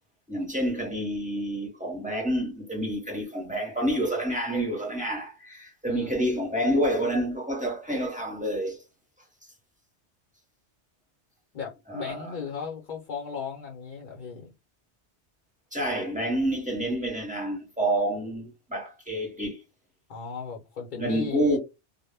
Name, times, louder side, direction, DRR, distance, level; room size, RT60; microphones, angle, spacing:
voice 1, 0.3-8.8 11.9-12.3 15.7-19.6 20.9-21.6, right 1 dB, 10° right, 0.7 m, -28 dB
voice 2, 11.5-14.5 20.1-21.6, left 6 dB, 50° left, 0.7 m, -36 dB
2.1 x 2.1 x 3.2 m
omnidirectional pair, 1.2 m